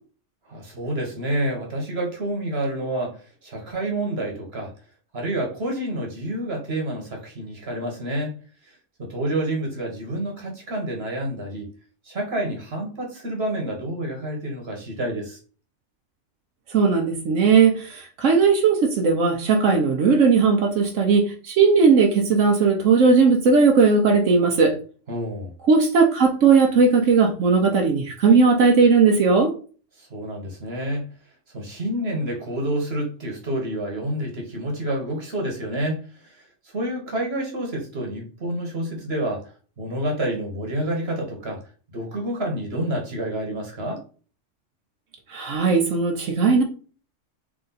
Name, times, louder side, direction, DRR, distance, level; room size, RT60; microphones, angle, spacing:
voice 1, 0.5-4.7 5.1-8.3 8.6-11.7 12.0-15.4 25.1-25.5 30.0-31.1 31.5-41.6 41.9-44.0, right 1 dB, 55° right, 1 dB, 1.5 m, -28 dB
voice 2, 16.7-24.8 25.7-29.5 45.3-46.6, right 5 dB, 85° right, 2 dB, 1.2 m, -17 dB
3.8 x 3.4 x 4.0 m, 0.39 s
omnidirectional pair, 1.3 m